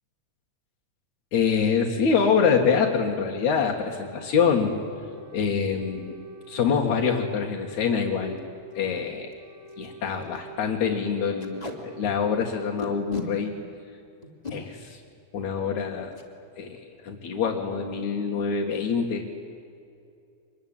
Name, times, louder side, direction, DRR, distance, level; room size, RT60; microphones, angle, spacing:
voice 1, 1.3-4.8 5.3-6.2 6.5-8.4 8.7-9.3 9.8-13.5 14.5-15.0 15.3-16.2 16.6-19.3, left 6 dB, 70° left, -1 dB, 3.2 m, -25 dB
sound 1, 5.1-5.5 5.8-7.3 7.6-9.1 9.4-10.9 11.2-12.1, right 1 dB, 45° right, 7.5 m, -46 dB
Packing tape duct tape, 7.7-7.9 8.4-8.5 8.7-8.9 9.3-9.4 9.7-9.9 10.2-10.4 11.4-11.8 12.8-13.3 14.2-14.6 16.1-16.3 16.7-16.8 17.1-17.5, left 3 dB, 15° left, 2.5 m, -36 dB
25.5 x 21.5 x 9.1 m, 2.6 s
omnidirectional pair, 3.5 m